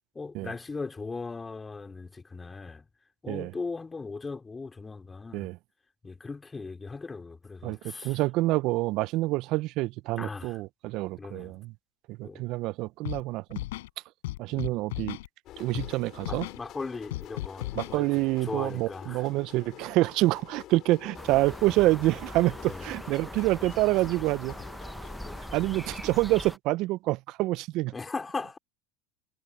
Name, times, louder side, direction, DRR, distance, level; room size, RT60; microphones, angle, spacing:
voice 1, 0.1-2.8 3.2-5.5 6.0-8.2 10.2-10.6 11.2-11.6 12.2-12.4 14.5-14.8 16.1-18.1 18.4-19.3 22.7-23.0 25.2-25.6 27.9-28.6, left 4 dB, 20° left, 5.0 m, -38 dB
voice 2, 7.6-11.7 12.1-13.6 14.4-15.2 15.6-16.5 17.8-24.5 25.5-27.9, right 19 dB, 60° right, 0.7 m, -27 dB
Scratching (performance technique), 13.0-13.2 13.5-13.9 14.2-15.3 15.7-15.9 16.2-16.6 17.1-18.0, left 17 dB, 75° left, 5.8 m, -35 dB
sound 1, 15.5-26.2, left 14 dB, 50° left, 5.5 m, -48 dB
sound 2, 21.2-26.6, equal, ahead, 1.3 m, -41 dB
hypercardioid pair, 90°, 0 cm